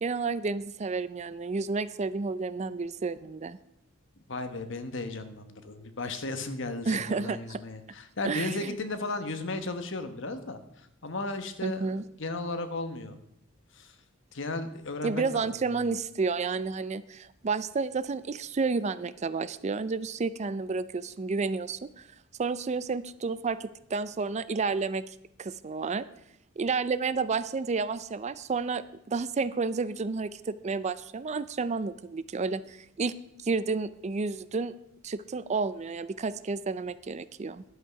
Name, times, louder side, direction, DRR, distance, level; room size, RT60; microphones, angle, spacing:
voice 1, 0.0-3.6 6.9-7.6 8.2-8.8 11.6-12.0 15.0-22.1 22.4-26.0 26.6-33.1 33.4-34.7 35.0-37.6, right 4 dB, 35° right, 15 dB, 0.4 m, -31 dB
voice 2, 4.3-10.6 11.0-13.2 13.7-13.9 14.3-15.9, left 2 dB, 65° left, 9 dB, 1.2 m, -35 dB
11.5 x 8.2 x 5.8 m, 0.79 s
head